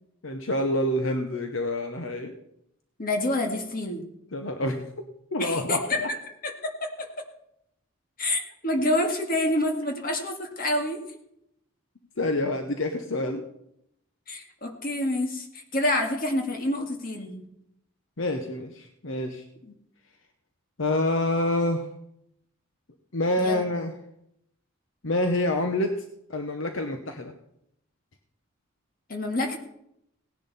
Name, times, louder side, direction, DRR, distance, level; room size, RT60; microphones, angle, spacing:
voice 1, 0.2-2.3 4.3-5.1 5.3-6.1 8.8-8.9 12.2-13.5 18.2-19.4 20.8-21.9 23.1-23.9 25.0-26.0 26.3-27.3, left 1 dB, 70° left, 6 dB, 1.0 m, -27 dB
voice 2, 3.0-4.0 5.4-6.2 6.4-7.3 8.2-11.0 14.3-17.4 23.4-23.7 29.1-29.6, left 1 dB, 45° left, 3 dB, 1.9 m, -28 dB
17.5 x 10.5 x 4.2 m, 0.77 s
head